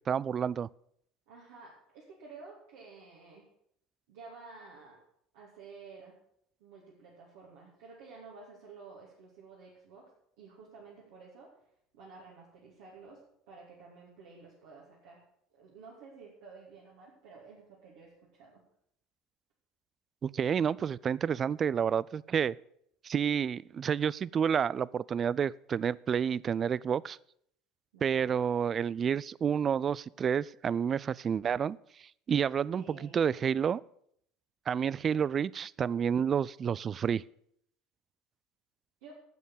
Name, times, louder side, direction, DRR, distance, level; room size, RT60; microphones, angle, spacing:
voice 1, 0.1-0.7 20.2-22.5 23.0-27.2 28.0-31.8 32.3-33.8 34.7-37.2, right 7 dB, 35° right, 0.3 m, -29 dB
voice 2, 1.3-3.5 4.1-5.0 5.3-6.2 6.6-10.0 10.4-11.5 11.9-13.2 13.5-15.2 15.5-18.6 27.9-28.4 32.7-33.2 39.0-39.2, right 4 dB, 70° right, 2.7 m, -52 dB
9.2 x 7.3 x 8.1 m
hypercardioid pair, 70°, 0 cm